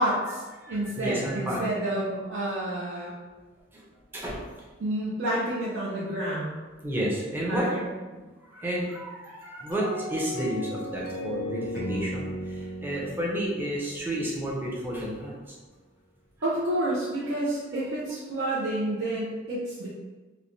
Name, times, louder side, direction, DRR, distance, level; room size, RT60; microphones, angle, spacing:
voice 1, 0.0-3.1 4.8-6.6 7.5-7.8 16.4-19.9, right 1 dB, 70° right, -8 dB, 0.5 m, -29 dB
voice 2, 0.6-1.6 3.7-3.8 4.1-4.4 6.8-8.2 8.5-15.4, right 1 dB, 10° right, -4 dB, 0.5 m, -31 dB
sound 1, 9.7-14.9, left 1 dB, 55° left, 0.4 m, -36 dB
3.0 x 2.1 x 2.5 m, 1.3 s
head